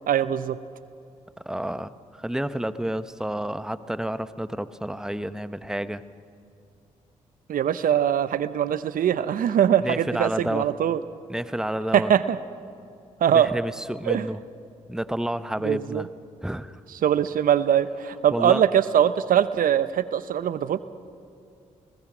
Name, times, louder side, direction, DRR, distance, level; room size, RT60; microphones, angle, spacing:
voice 1, 0.1-0.6 7.5-11.0 11.9-12.4 13.2-13.5 14.1-14.3 15.6-16.1 17.0-20.8, right 9 dB, 65° right, 14 dB, 0.8 m, -22 dB
voice 2, 1.4-6.0 9.8-10.7 11.3-12.1 13.3-14.4 14.9-16.1 16.4-16.8 18.3-18.6, right 1 dB, 5° right, 13 dB, 1.0 m, -30 dB
30.0 x 19.5 x 6.1 m, 2.5 s
supercardioid pair, 50°, 15 cm